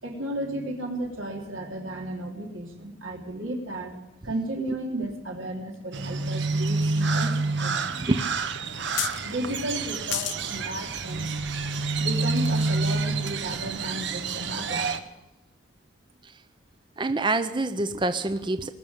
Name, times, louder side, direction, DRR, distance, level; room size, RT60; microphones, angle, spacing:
voice 1, 0.0-4.0 4.2-8.1 9.2-11.3 11.9-14.9, right 1 dB, 90° right, 1 dB, 3.2 m, -34 dB
sound 1, 5.7-5.8 6.3-7.3 7.7-7.8 8.0-8.1 9.0-9.3 10.1-10.4 11.0-11.1, left 15 dB, 65° left, 0.6 m, -31 dB
Crow, 5.9-15.0, right 3 dB, 65° right, 1.1 m, -28 dB
voice 2, 17.0-18.7, right 2 dB, 25° right, 10 dB, 0.5 m, -26 dB
20.5 x 6.9 x 8.9 m, 1.0 s
head